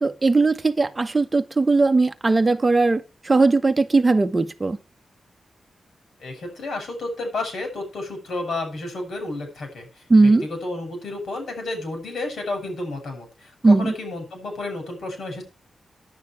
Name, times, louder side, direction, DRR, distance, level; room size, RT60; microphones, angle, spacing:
voice 1, 0.0-4.8 10.1-10.5 13.6-13.9, right 3 dB, 25° right, 1.0 m, -18 dB
voice 2, 6.2-10.0 10.4-15.4, left 2 dB, 80° left, 7.2 m, -31 dB
11.0 x 9.2 x 4.8 m
wide cardioid pair, 140°, 0 cm